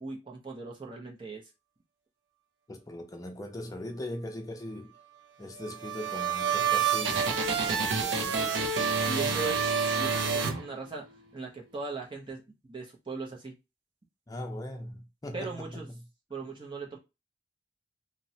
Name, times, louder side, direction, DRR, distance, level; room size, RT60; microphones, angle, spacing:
voice 1, 0.0-1.4 9.1-9.6 9.9-13.6 15.3-15.9 16.3-17.0, right 4 dB, 25° right, 0.6 m, -39 dB
voice 2, 2.7-5.0 5.4-7.4 7.6-8.6 14.3-16.0, left 1 dB, 20° left, 0.5 m, -40 dB
sound 1, 5.6-11.2, right 6 dB, 80° right, 0.6 m, -28 dB
3.0 x 2.1 x 2.7 m
head